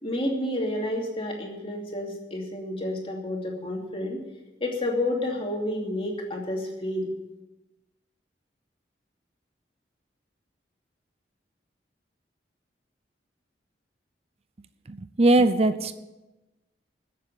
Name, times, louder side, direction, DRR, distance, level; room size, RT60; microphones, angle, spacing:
voice 1, 0.0-4.2 4.6-7.1, left 1 dB, 30° left, 0 dB, 2.7 m, -30 dB
voice 2, 14.9-15.9, right 2 dB, 35° right, 11 dB, 0.5 m, -21 dB
14.0 x 7.7 x 8.9 m, 1.1 s
head